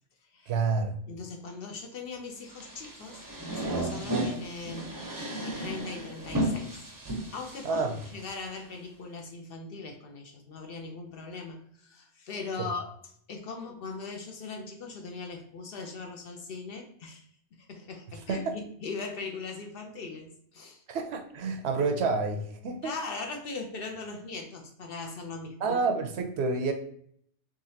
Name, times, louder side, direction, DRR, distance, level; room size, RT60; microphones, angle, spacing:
voice 1, 0.5-0.9 7.6-7.9 12.6-12.7 18.3-18.6 20.9-22.9 25.6-26.7, right 4 dB, 70° right, 6 dB, 0.8 m, -28 dB
voice 2, 1.1-6.8 7.3-12.9 13.3-17.2 17.5-20.8 22.8-25.7, left 4 dB, 60° left, 3 dB, 0.7 m, -40 dB
sound 1, 2.5-8.6, right 1 dB, 25° right, 0.5 m, -34 dB
3.9 x 3.1 x 2.7 m, 0.64 s
omnidirectional pair, 1.2 m